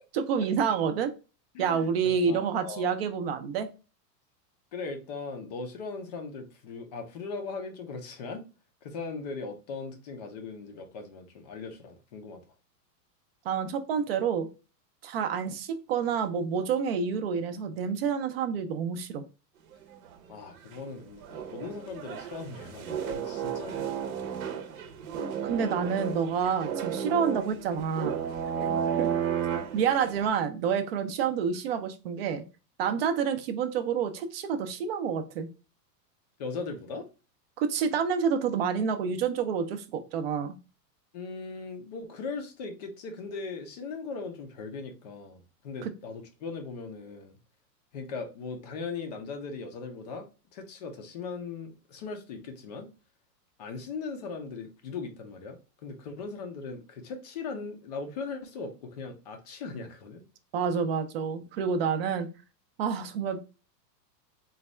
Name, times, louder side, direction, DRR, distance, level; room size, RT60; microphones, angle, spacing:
voice 1, 0.1-1.1 1.6-3.7 13.5-14.5 15.0-19.2 25.4-28.2 29.0-29.1 29.7-32.4 32.8-35.5 37.6-40.6 45.8-45.9 60.5-62.3 62.8-63.4, right 6 dB, 40° right, 0.4 m, -28 dB
voice 2, 1.5-1.9 2.2-3.0 4.7-8.5 8.8-12.4 20.3-24.5 28.6-28.9 36.4-37.1 41.1-47.4 47.9-50.3 50.5-52.9 53.6-60.2, left 4 dB, 30° left, 0.4 m, -39 dB
sound 1, 19.8-20.3 20.7-20.8 21.0-30.3, right 8 dB, 60° right, 0.8 m, -33 dB
4.0 x 2.3 x 3.1 m
supercardioid pair, 150°, 50 cm